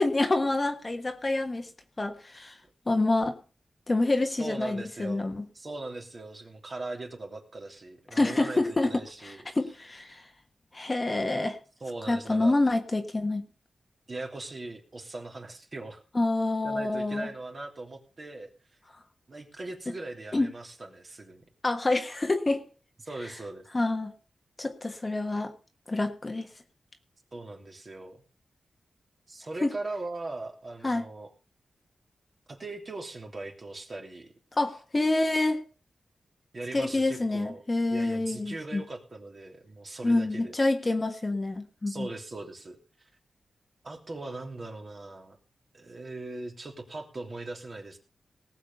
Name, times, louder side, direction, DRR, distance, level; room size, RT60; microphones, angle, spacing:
voice 1, 0.0-1.7 2.0-2.6 2.9-3.4 3.9-5.4 8.1-10.3 10.7-11.6 12.1-13.5 16.1-17.3 20.3-20.5 21.6-22.6 23.7-24.1 24.6-25.5 25.9-26.5 29.6-29.7 30.8-31.0 34.5-35.6 36.7-38.8 40.0-42.1, left 2 dB, 25° left, 6 dB, 1.4 m, -27 dB
voice 2, 4.4-5.3 5.5-9.4 11.8-12.6 14.1-16.0 16.6-18.5 19.3-21.4 23.0-23.7 27.3-28.2 29.3-31.3 32.5-34.3 36.5-37.6 37.9-40.5 41.9-42.8 43.8-45.4 45.7-48.0, right 2 dB, 40° right, 2 dB, 3.1 m, -40 dB
18.5 x 7.4 x 5.6 m, 0.36 s
wide cardioid pair, 120°, 0 cm